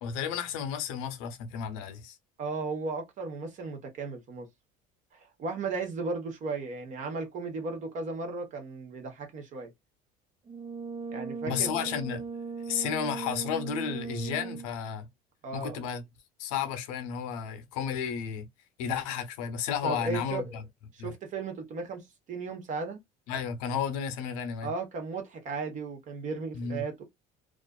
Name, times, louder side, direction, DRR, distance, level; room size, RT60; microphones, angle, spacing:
voice 1, 0.0-2.2 11.5-12.2 12.7-15.1 15.5-16.0 16.4-18.5 18.8-20.6 21.0-21.1 23.3-24.7 26.5-26.8, left 7 dB, 90° left, 0.7 m, -32 dB
voice 2, 2.4-4.5 5.1-9.7 11.1-11.7 15.4-15.8 19.8-20.5 20.9-23.0 24.6-27.1, right 4 dB, 50° right, 1.0 m, -35 dB
Brass instrument, 10.5-14.8, right 5 dB, 30° right, 0.4 m, -38 dB
2.4 x 2.4 x 2.2 m
supercardioid pair, 110°, 17 cm